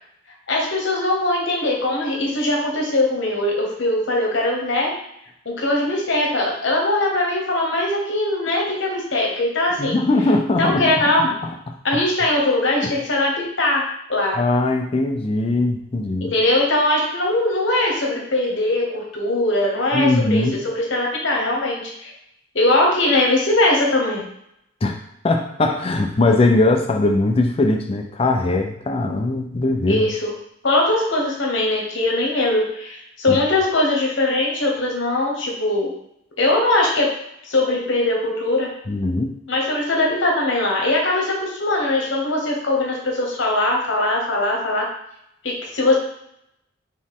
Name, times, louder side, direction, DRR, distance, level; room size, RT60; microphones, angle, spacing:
voice 1, 0.5-4.9 5.4-10.0 10.6-11.3 11.8-14.4 16.3-20.4 20.7-22.1 22.5-24.3 29.9-30.3 30.6-35.9 36.4-37.1 37.5-38.7 39.5-44.9 45.4-46.0, left 2 dB, 70° left, -1 dB, 1.1 m, -21 dB
voice 2, 9.8-10.9 11.4-11.5 12.8-12.9 14.4-16.3 19.9-20.6 24.8-25.0 25.2-30.1 33.3-33.4 38.9-39.3, left 2 dB, 30° left, 4 dB, 0.4 m, -20 dB
4.3 x 3.0 x 3.7 m, 0.76 s
head